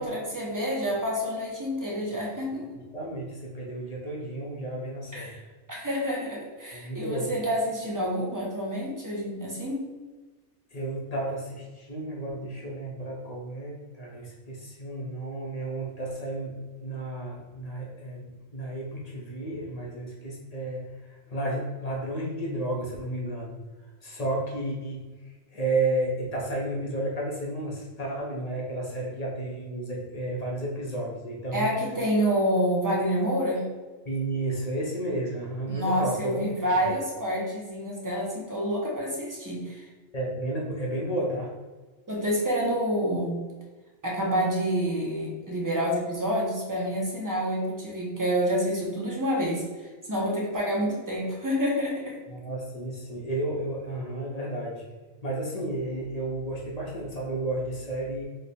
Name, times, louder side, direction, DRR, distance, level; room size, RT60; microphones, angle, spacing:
voice 1, 0.0-2.8 5.1-5.4 5.7-9.9 31.5-33.6 35.7-39.9 42.1-43.5 44.0-52.2, equal, 35° right, -4 dB, 0.3 m, -28 dB
voice 2, 2.7-5.3 6.7-7.3 10.7-16.5 16.8-23.6 24.0-25.0 25.5-31.7 34.0-36.4 36.7-36.8 40.1-41.5 52.3-54.8 55.2-58.2, right 1 dB, 45° left, -3 dB, 0.5 m, -32 dB
3.0 x 2.1 x 4.1 m, 1.2 s
omnidirectional pair, 1.3 m